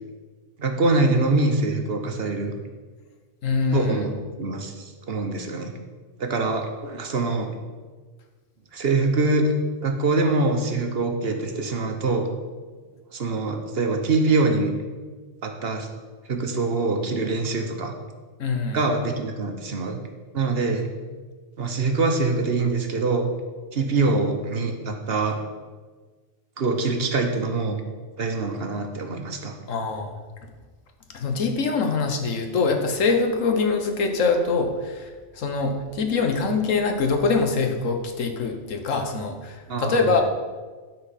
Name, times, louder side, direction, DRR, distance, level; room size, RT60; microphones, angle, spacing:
voice 1, 0.6-2.5 3.7-4.1 4.4-5.7 6.2-7.5 8.7-9.5 9.8-12.3 13.1-14.7 15.4-15.9 16.3-17.9 18.7-20.0 20.3-20.9 21.6-23.3 23.7-25.4 26.6-27.8 28.2-29.6 39.7-40.2, right 3 dB, 55° right, 4 dB, 1.1 m, -24 dB
voice 2, 3.4-4.1 18.4-18.8 29.7-30.2 31.1-40.2, left 4 dB, 80° left, 4 dB, 1.4 m, -24 dB
12.0 x 4.4 x 5.7 m, 1.4 s
omnidirectional pair, 1.3 m